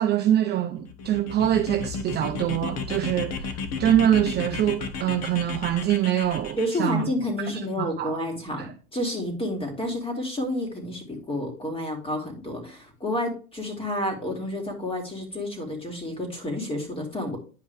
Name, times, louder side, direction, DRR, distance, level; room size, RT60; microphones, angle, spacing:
voice 1, 0.0-7.1 7.8-8.2 8.6-8.7, right 11 dB, 25° right, 0.6 m, -24 dB
sound 1, 0.9-6.9, left 5 dB, 35° left, 1.4 m, -34 dB
voice 2, 6.6-17.4, left 1 dB, 15° left, 2.8 m, -30 dB
10.0 x 5.3 x 3.5 m
hypercardioid pair, 105°, 43 cm